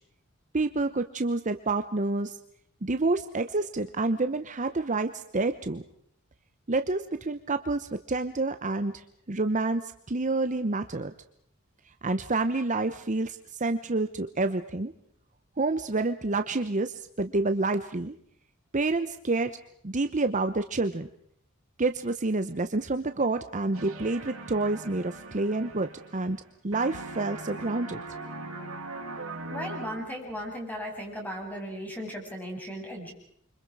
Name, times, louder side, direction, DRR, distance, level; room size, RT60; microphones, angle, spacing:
voice 1, 0.5-2.4 2.8-5.8 6.7-11.1 12.0-14.9 15.6-18.1 18.7-19.6 19.8-21.1 21.8-28.0, right 3 dB, 35° right, 9 dB, 0.9 m, -28 dB
sound 1, 23.7-26.5 26.7-30.3, right 2 dB, 85° right, 5.2 m, -40 dB
voice 2, 29.5-33.1, equal, 10° left, 0 dB, 7.6 m, -36 dB
29.0 x 25.5 x 4.8 m, 0.67 s
head